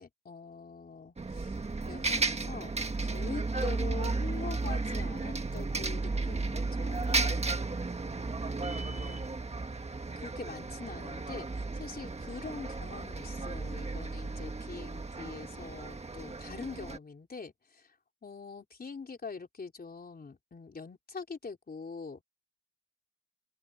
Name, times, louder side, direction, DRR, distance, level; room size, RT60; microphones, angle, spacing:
voice 1, 0.0-7.5 8.4-9.2 10.2-18.0 18.2-22.2, left 4 dB, 25° left, 3.9 m, -44 dB
Bus, 1.2-17.0, right 3 dB, 20° right, 1.4 m, -34 dB
open air
wide cardioid pair, 170°, 35 cm